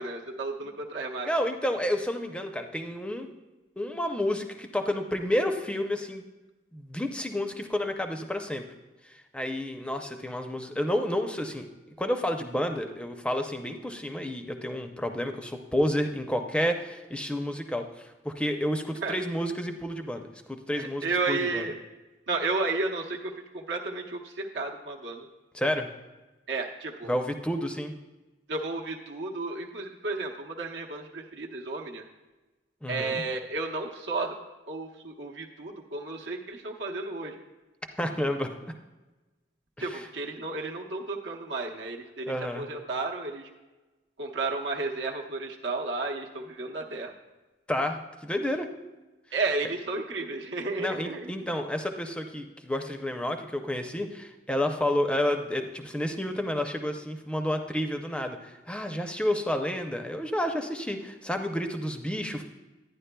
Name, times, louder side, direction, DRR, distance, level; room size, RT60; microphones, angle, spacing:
voice 1, 0.0-1.3 19.0-19.1 20.7-21.7 22.3-25.2 26.5-27.1 28.5-32.0 32.9-34.3 34.7-37.4 39.8-43.5 44.2-47.1 49.3-51.3, right 3 dB, 80° right, 0 dB, 0.8 m, -32 dB
voice 2, 1.2-3.3 3.8-6.2 6.7-8.6 9.0-11.7 12.0-21.7 25.5-25.9 27.0-28.0 32.8-33.2 38.0-38.5 39.8-40.1 42.3-42.7 47.7-48.7 50.8-62.4, left 1 dB, 5° left, 5 dB, 0.5 m, -30 dB
11.0 x 9.8 x 2.2 m, 1.2 s
head